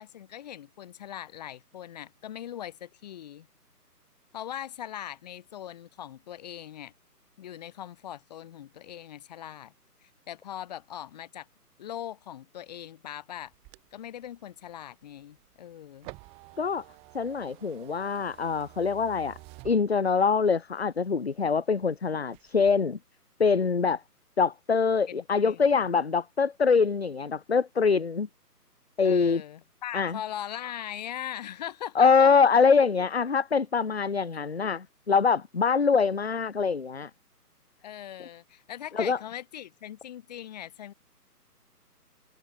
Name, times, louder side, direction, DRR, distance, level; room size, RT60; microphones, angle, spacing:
voice 1, 0.0-3.5 4.3-6.9 7.4-9.7 10.0-11.5 11.8-13.5 13.9-16.1 25.1-25.9 29.0-32.3 34.3-34.4 37.8-40.9, left 11 dB, 25° left, 2.5 m, -40 dB
sound 1, 13.4-20.4 20.9-21.9 22.2-22.7, right 25 dB, 10° right, 2.8 m, -51 dB
voice 2, 17.1-19.4 19.6-23.0 23.4-24.0 24.4-28.3 29.0-29.4 29.9-30.2 32.0-37.1 39.0-39.2, left 5 dB, 45° left, 0.5 m, -24 dB
hypercardioid pair, 160°, 48 cm